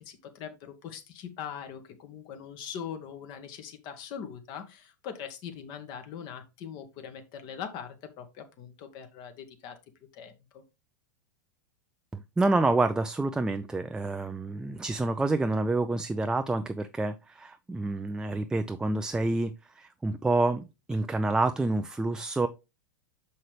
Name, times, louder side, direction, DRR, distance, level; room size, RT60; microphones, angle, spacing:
voice 1, 0.0-9.8 10.1-10.6, left 8 dB, 45° left, 7 dB, 1.4 m, -41 dB
voice 2, 12.1-22.5, right 2 dB, 5° right, 8 dB, 0.4 m, -28 dB
6.4 x 5.6 x 3.3 m, 0.25 s
hypercardioid pair, 95°, 11 cm